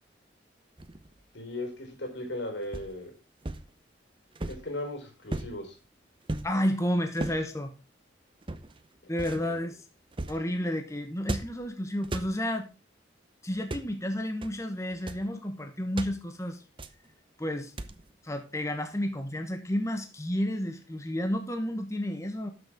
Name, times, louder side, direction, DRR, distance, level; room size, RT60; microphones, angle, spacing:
sound 1, 0.8-1.2 2.7-3.0 3.4-3.7 4.4-4.7 5.3-5.6 6.3-6.6 7.2-7.5 8.4-8.8 9.2-9.5 10.1-10.5 11.2-11.7 12.0-12.4 13.5-13.9 14.4-14.6 14.9-15.3 16.0-16.2 16.8-17.1 17.8-18.1, right 2 dB, 30° right, 0.7 m, -36 dB
voice 1, 1.3-3.1 4.5-5.8 9.0-9.1 9.4-9.5, left 1 dB, 80° left, 4 dB, 4.0 m, -37 dB
voice 2, 6.4-7.7 9.1-9.8 10.3-12.7 13.4-16.6 17.4-17.7 18.2-22.5, equal, 15° left, 6 dB, 1.0 m, -31 dB
12.5 x 6.6 x 3.6 m, 0.31 s
head